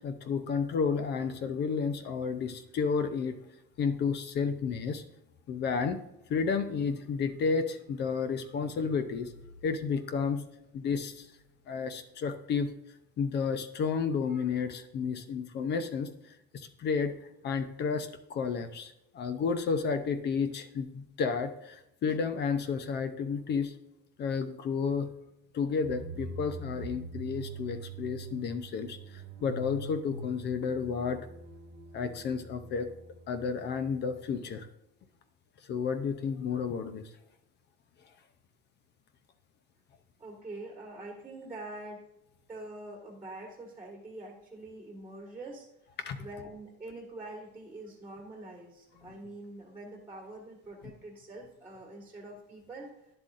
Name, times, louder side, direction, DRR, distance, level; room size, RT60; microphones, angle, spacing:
voice 1, 0.0-3.4 3.8-5.0 5.5-6.0 6.3-9.3 9.6-10.4 10.7-11.3 11.7-12.7 13.2-17.1 17.4-23.7 24.2-25.1 25.5-31.3 31.9-32.9 33.3-34.7 35.7-37.0 46.1-46.2, left 5 dB, 35° left, 10 dB, 0.6 m, -31 dB
sound 1, 25.8-34.7, right 2 dB, 85° right, 1.1 m, -44 dB
voice 2, 40.2-42.0 42.5-45.7 46.2-53.1, right 2 dB, 5° right, 0 dB, 1.7 m, -45 dB
10.5 x 7.8 x 2.5 m, 0.87 s
cardioid pair, 165°, 29 cm